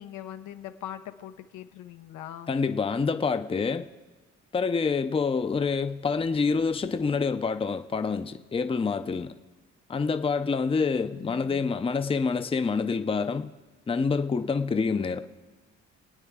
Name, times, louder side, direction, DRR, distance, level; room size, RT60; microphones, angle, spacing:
voice 1, 0.0-2.5 11.1-11.6, left 11 dB, 85° left, 9 dB, 0.9 m, -41 dB
voice 2, 2.5-3.9 4.5-9.3 9.9-13.5 13.9-15.2, left 5 dB, 20° left, 9 dB, 0.6 m, -27 dB
25.5 x 9.2 x 3.6 m, 1.3 s
cardioid pair, 90°, 30 cm